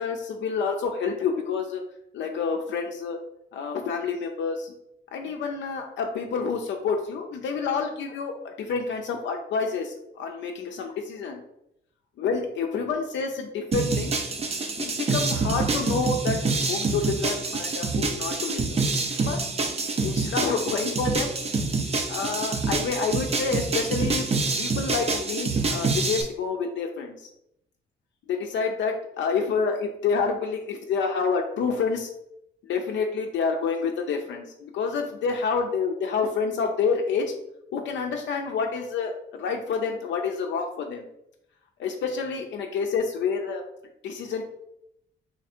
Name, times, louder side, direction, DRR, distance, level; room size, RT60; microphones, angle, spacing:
voice 1, 0.0-1.8 2.1-3.2 3.5-4.7 5.1-8.3 8.6-11.4 12.2-14.1 14.8-18.8 19.2-19.4 20.0-21.3 22.1-24.3 24.6-27.2 28.3-32.1 32.6-37.3 37.7-41.0 41.8-43.6 44.0-44.4, left 5 dB, 70° left, 3 dB, 0.5 m, -28 dB
sound 1, 13.7-26.2, right 3 dB, 30° right, 0.5 m, -26 dB
3.2 x 2.4 x 4.2 m, 0.79 s
cardioid pair, 90°, 20 cm